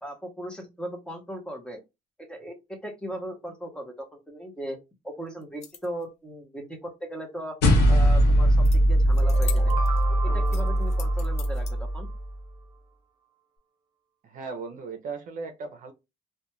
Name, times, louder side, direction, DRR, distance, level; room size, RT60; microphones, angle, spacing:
voice 1, 0.0-1.8 2.2-4.8 5.0-7.6 7.9-9.7 10.2-12.1, right 1 dB, 5° left, 0.8 m, -38 dB
sound 1, 5.4-6.0 8.6-8.8 9.1-10.0 10.5-11.7, left 7 dB, 40° left, 0.6 m, -41 dB
sound 2, 7.6-12.3, equal, 80° left, 0.9 m, -21 dB
sound 3, 9.1-12.1, right 4 dB, 25° right, 1.0 m, -37 dB
voice 2, 14.2-15.9, right 4 dB, 50° right, 0.6 m, -37 dB
2.4 x 2.2 x 3.0 m
cardioid pair, 110°, 17 cm